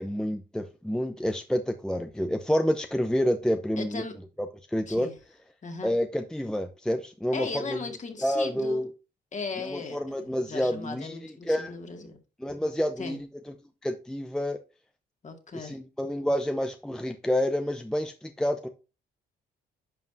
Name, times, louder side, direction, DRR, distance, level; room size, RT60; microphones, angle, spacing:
voice 1, 0.0-4.0 4.7-5.1 5.8-7.8 8.2-8.9 9.6-11.2 11.5-11.8 12.4-13.5 13.8-14.6 15.5-18.7, equal, 5° left, 0.7 m, -28 dB
voice 2, 3.8-4.1 4.8-5.1 5.6-5.9 7.3-8.9 9.3-10.0 10.4-12.2 13.0-13.2 15.2-15.8, left 4 dB, 40° left, 2.2 m, -37 dB
11.0 x 5.2 x 2.7 m
cardioid pair, 90°, 20 cm